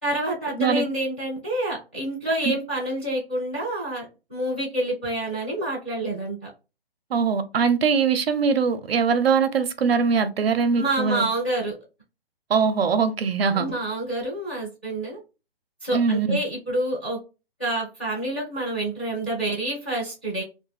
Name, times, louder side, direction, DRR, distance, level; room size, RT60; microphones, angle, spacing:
voice 1, 0.0-6.5 10.7-11.7 13.5-15.2 15.8-17.2 17.6-20.4, right 1 dB, 10° left, 0.6 m, -28 dB
voice 2, 7.1-11.3 12.5-13.7 15.9-16.4, right 5 dB, 70° right, 0.6 m, -22 dB
2.6 x 2.1 x 3.2 m
hypercardioid pair, 180°, 31 cm